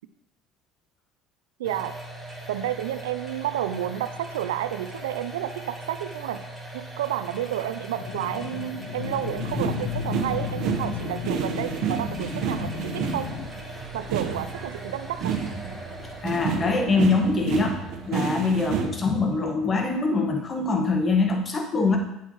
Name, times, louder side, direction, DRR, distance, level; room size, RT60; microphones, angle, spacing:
sound 1, 1.6-20.4, right 1 dB, 10° left, 3.8 m, -41 dB
voice 1, 1.6-2.0 2.5-6.4 6.7-13.3 13.9-15.4, right 11 dB, 85° right, 11 dB, 0.5 m, -31 dB
sound 2, 8.0-13.5, left 12 dB, 70° left, 0.6 m, -34 dB
sound 3, 9.0-18.9, right 7 dB, 65° right, 1.3 m, -30 dB
voice 2, 16.2-17.8 18.1-22.0, left 4 dB, 35° left, 2 dB, 1.7 m, -23 dB
9.4 x 8.0 x 3.2 m, 0.83 s
hypercardioid pair, 80°, 0 cm